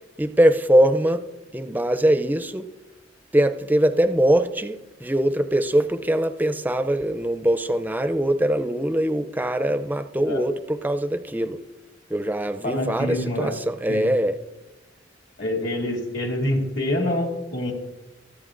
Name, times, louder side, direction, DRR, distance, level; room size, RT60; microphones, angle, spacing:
voice 1, 0.2-1.2 1.5-2.7 3.3-11.6 12.1-14.4, right 1 dB, 10° right, 9 dB, 0.4 m, -22 dB
voice 2, 12.6-13.5 13.9-14.1 15.4-17.7, left 1 dB, 70° left, 0 dB, 2.6 m, -26 dB
25.0 x 8.3 x 2.5 m, 1.1 s
head